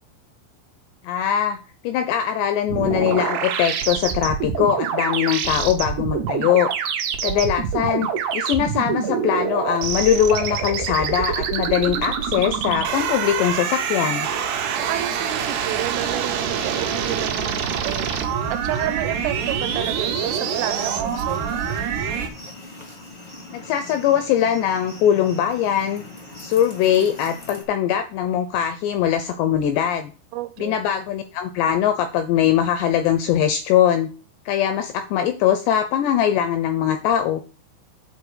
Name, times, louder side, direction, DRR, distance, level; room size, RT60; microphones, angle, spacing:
voice 1, 1.0-1.6 1.8-6.7 7.2-14.3 23.5-26.0 26.4-30.1 30.6-34.1 34.5-37.4, left 9 dB, 85° left, 2.4 m, -21 dB
sound 1, 2.7-22.3, right 7 dB, 70° right, 2.9 m, -25 dB
voice 2, 14.8-18.1 18.5-21.5 30.3-30.8, right 14 dB, 90° right, 3.4 m, -30 dB
sound 2, 16.5-27.6, left 2 dB, 30° left, 0.9 m, -40 dB
8.5 x 4.5 x 6.7 m
omnidirectional pair, 5.8 m